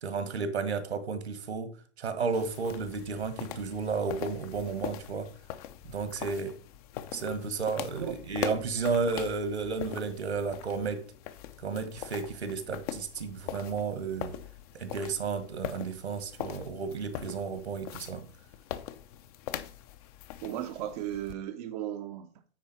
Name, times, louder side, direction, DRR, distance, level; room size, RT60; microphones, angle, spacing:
voice 1, 0.0-1.7 2.0-5.3 5.8-6.6 7.1-11.0 11.6-14.3 14.7-18.2, right 5 dB, 70° right, 1.7 m, -32 dB
sound 1, 2.3-21.3, left 11 dB, 35° left, 0.7 m, -42 dB
voice 2, 20.4-22.3, right 11 dB, 35° right, 0.7 m, -36 dB
9.4 x 4.2 x 5.7 m
figure-of-eight pair, 110°, 34 cm